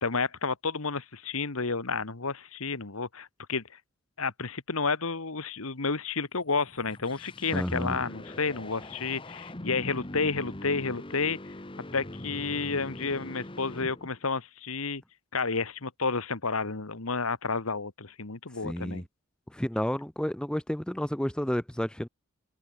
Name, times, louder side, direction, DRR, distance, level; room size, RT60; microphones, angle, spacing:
voice 1, 0.0-3.6 4.2-11.5 11.9-15.0 15.3-19.0, left 4 dB, 75° left, 1.6 m, -31 dB
sound 1, 6.5-14.3, left 1 dB, 25° left, 1.2 m, -42 dB
voice 2, 7.5-8.0 18.6-19.0 19.5-22.1, equal, 5° left, 0.4 m, -31 dB
head